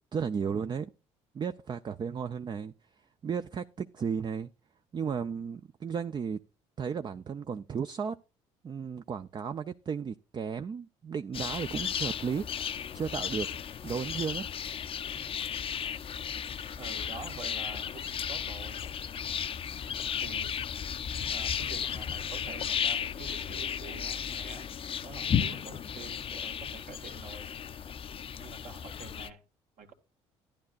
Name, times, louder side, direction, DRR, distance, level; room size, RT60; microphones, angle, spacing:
voice 1, 0.1-0.9 1.3-2.7 3.2-4.5 4.9-6.4 6.8-8.2 8.6-13.5 13.8-14.5, right 6 dB, 30° right, 0.5 m, -34 dB
sound 1, 11.3-29.3, left 8 dB, 40° left, 0.5 m, -34 dB
voice 2, 16.8-18.8 20.2-20.6 21.3-24.7 25.0-27.5 28.4-29.4 29.8-30.0, right 5 dB, 60° right, 1.7 m, -47 dB
12.0 x 10.5 x 2.4 m
hypercardioid pair, 65°, 14 cm